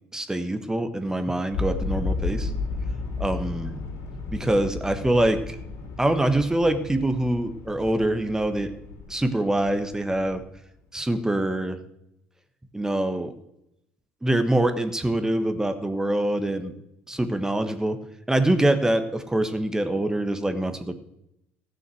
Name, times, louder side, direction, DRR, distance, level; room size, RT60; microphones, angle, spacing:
voice 1, 0.1-2.5 3.2-3.8 4.3-5.6 6.0-8.7 9.1-10.4 10.9-11.8 12.7-13.3 14.2-16.7 17.1-18.0 18.3-20.9, right 1 dB, 10° right, 9 dB, 1.4 m, -24 dB
sound 1, 1.5-10.5, left 3 dB, 65° left, 3.7 m, -33 dB
15.0 x 6.5 x 7.8 m, 0.82 s
hypercardioid pair, 70°, 6 cm